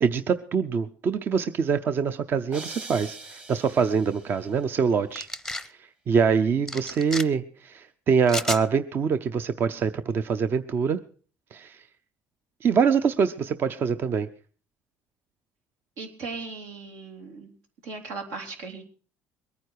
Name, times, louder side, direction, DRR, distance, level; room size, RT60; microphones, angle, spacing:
voice 1, 0.0-5.3 5.6-11.0 11.5-11.8 12.6-14.3, right 6 dB, 40° right, 11 dB, 0.6 m, -24 dB
sound 1, 2.5-4.6, right 2 dB, 25° right, 1.3 m, -42 dB
sound 2, 5.2-5.7 6.7-7.2 8.3-8.6, left 2 dB, 5° left, 0.7 m, -31 dB
voice 2, 16.0-17.5 17.8-18.8, right 4 dB, 85° right, 3 dB, 3.4 m, -37 dB
22.0 x 9.6 x 4.7 m, 0.41 s
cardioid pair, 115°, 5 cm